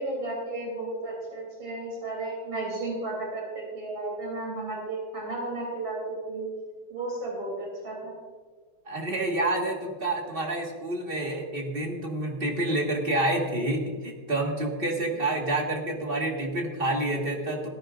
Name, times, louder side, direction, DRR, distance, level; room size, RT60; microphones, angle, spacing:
voice 1, 0.0-6.5 6.9-8.1, right 2 dB, 75° right, -2 dB, 4.0 m, -33 dB
voice 2, 8.9-17.7, right 1 dB, 30° right, 0 dB, 1.7 m, -28 dB
17.5 x 14.0 x 2.5 m, 1.5 s
omnidirectional pair, 2.2 m